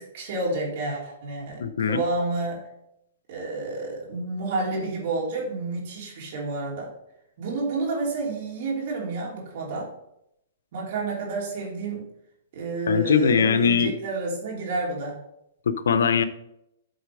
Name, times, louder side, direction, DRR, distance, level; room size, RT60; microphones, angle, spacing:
voice 1, 0.0-2.6 3.3-6.9 7.4-9.9 10.7-12.1 12.5-15.2, right 3 dB, 55° right, -3 dB, 3.2 m, -30 dB
voice 2, 1.6-2.0 12.9-13.9 15.7-16.2, left 6 dB, 80° left, 11 dB, 0.7 m, -21 dB
7.9 x 4.2 x 4.9 m, 0.79 s
hypercardioid pair, 140°, 0 cm